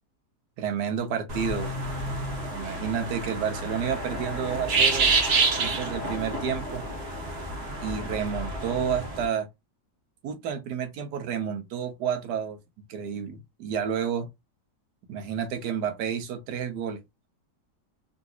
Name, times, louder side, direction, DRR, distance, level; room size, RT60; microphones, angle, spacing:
voice 1, 0.6-1.7 2.5-5.1 5.5-6.8 7.8-9.5 10.2-12.6 12.9-14.3 15.1-17.3, right 7 dB, 75° right, 1.4 m, -30 dB
sound 1, 1.3-9.2, right 3 dB, 45° right, 1.1 m, -28 dB
3.8 x 2.6 x 2.3 m
omnidirectional pair, 1.8 m